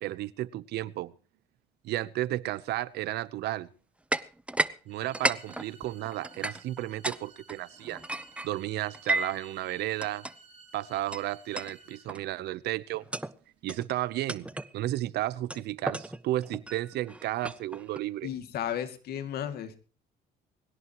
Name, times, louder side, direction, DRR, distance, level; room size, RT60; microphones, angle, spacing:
voice 1, 0.0-1.1 1.8-3.7 4.9-8.0 8.4-10.3 10.7-13.0 13.6-14.5 14.7-18.3, right 15 dB, 75° right, 0.9 m, -33 dB
sound 1, 4.1-4.8 5.0-7.2 7.5-9.4 10.0-10.3 11.1-11.2 11.5-11.8 12.1-12.4 12.9-13.3 13.7-13.9 14.3-14.7 15.5-18.0, right 2 dB, 5° right, 0.7 m, -33 dB
sound 2, 4.9-12.0, right 4 dB, 40° right, 7.8 m, -55 dB
voice 2, 18.2-19.8, left 10 dB, 70° left, 2.4 m, -34 dB
21.0 x 17.0 x 3.0 m
cardioid pair, 110°, 17 cm